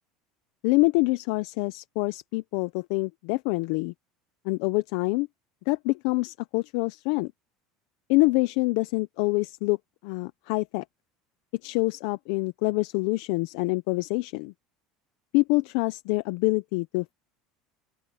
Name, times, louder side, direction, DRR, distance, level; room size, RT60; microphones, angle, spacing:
voice 1, 0.6-3.9 4.4-5.3 5.7-7.3 8.1-9.8 10.0-10.8 11.6-14.5 15.3-17.1, left 24 dB, 70° left, 0.6 m, -26 dB
open air
supercardioid pair, 140°, 0 cm